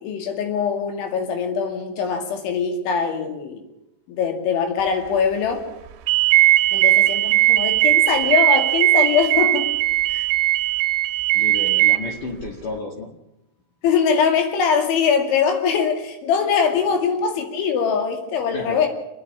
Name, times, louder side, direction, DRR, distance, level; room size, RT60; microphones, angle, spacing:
voice 1, 0.0-3.6 4.2-5.6 6.7-9.7 10.1-10.3 13.8-18.9, left 6 dB, 90° left, 5 dB, 4.8 m, -22 dB
sound 1, 6.1-12.0, right 16 dB, 80° right, 3.3 m, -18 dB
voice 2, 11.3-13.1 18.5-18.9, left 3 dB, 55° left, 1 dB, 2.9 m, -32 dB
28.5 x 9.8 x 9.9 m, 0.92 s
omnidirectional pair, 5.2 m